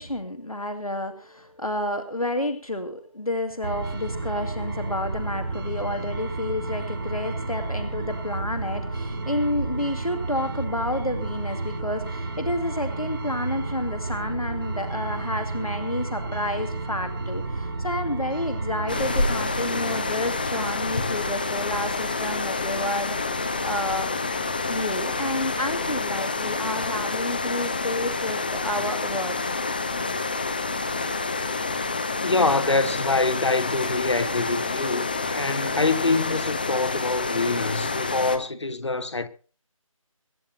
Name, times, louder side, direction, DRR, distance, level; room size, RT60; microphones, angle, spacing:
voice 1, 0.0-24.1 24.7-29.6, left 1 dB, 90° left, 2.2 m, -30 dB
sound 1, 3.6-22.3, right 3 dB, 40° right, 1.9 m, -32 dB
sound 2, 18.9-38.4, left 3 dB, 15° left, 0.7 m, -28 dB
voice 2, 32.2-39.3, left 3 dB, 55° left, 1.2 m, -25 dB
24.0 x 11.0 x 2.8 m
figure-of-eight pair, 160°, 18 cm